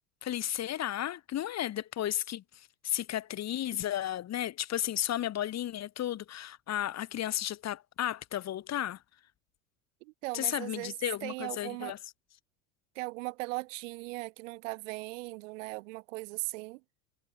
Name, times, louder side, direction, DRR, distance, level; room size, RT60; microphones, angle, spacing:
voice 1, 0.2-9.0 10.3-12.0, left 12 dB, 40° left, 5.0 m, -34 dB
voice 2, 10.0-11.0 11.2-11.9 13.0-16.8, right 24 dB, 60° right, 3.6 m, -38 dB
hypercardioid pair, 85°, 42 cm